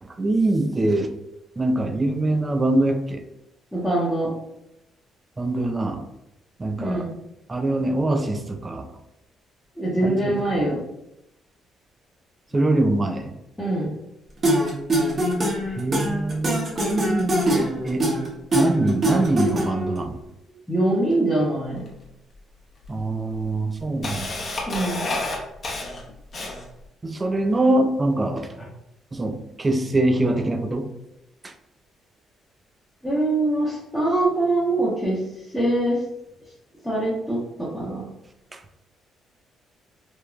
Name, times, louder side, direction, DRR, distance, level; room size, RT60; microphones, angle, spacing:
voice 1, 0.0-1.1 1.6-3.2 5.4-6.1 6.6-7.1 7.5-8.9 10.0-10.6 12.5-13.3 15.7-18.1 18.5-20.2 22.9-24.4 27.0-28.5 29.1-30.9 31.4-31.5 38.5-38.6, right 2 dB, 20° right, 6 dB, 0.3 m, -23 dB
voice 2, 3.7-4.3 6.8-7.1 9.8-10.8 13.6-13.9 20.5-21.8 24.7-25.0 28.6-28.7 33.0-36.0 36.8-38.0, right 1 dB, 5° left, -9 dB, 0.7 m, -23 dB
sound 1, 14.4-20.0, right 1 dB, 40° right, 0.8 m, -23 dB
Camera, 21.9-22.0 22.8-22.9 23.4-26.8, left 2 dB, 40° left, 0.7 m, -30 dB
3.0 x 2.1 x 2.3 m, 0.86 s
cardioid pair, 115°, 0 cm